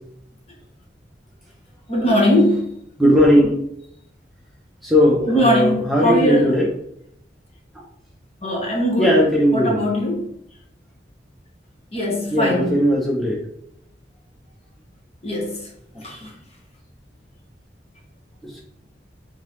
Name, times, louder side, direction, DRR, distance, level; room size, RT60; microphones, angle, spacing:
voice 1, 1.9-2.8 5.3-6.5 8.4-9.2 9.5-10.3 11.9-12.8 15.2-15.7 16.0-16.2, equal, 35° left, 1.1 m, -20 dB
voice 2, 3.0-3.5 4.8-6.7 9.0-9.8 12.3-13.4 15.9-16.3 18.4-18.6, equal, ahead, 0.7 m, -18 dB
3.7 x 3.6 x 3.1 m
head